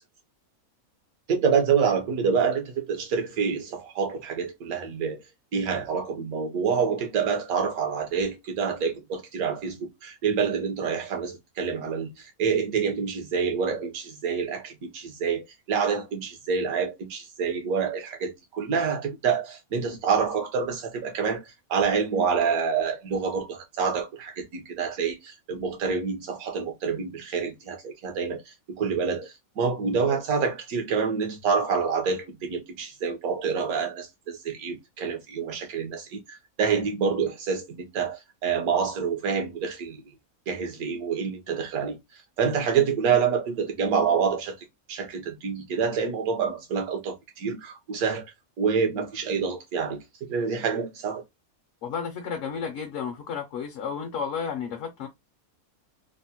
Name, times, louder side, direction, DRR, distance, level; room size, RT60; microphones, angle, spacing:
voice 1, 1.3-5.2 5.5-40.0 40.5-44.5 44.9-48.3 48.6-50.0 50.3-51.2, right 6 dB, 75° right, 1.2 m, -27 dB
voice 2, 51.8-55.1, left 6 dB, 65° left, 0.9 m, -32 dB
3.5 x 2.1 x 2.7 m
omnidirectional pair, 1.5 m